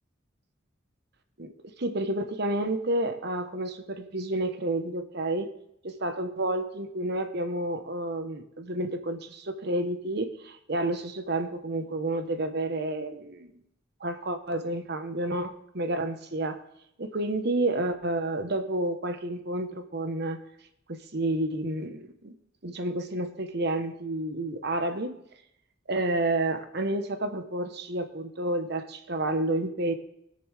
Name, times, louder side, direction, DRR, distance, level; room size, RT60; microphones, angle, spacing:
voice 1, 1.4-5.5 5.8-13.5 14.0-16.6 17.0-20.4 20.9-22.3 22.6-25.2 25.9-29.9, right 1 dB, 55° right, 8 dB, 1.0 m, -30 dB
20.5 x 6.8 x 3.4 m, 0.75 s
head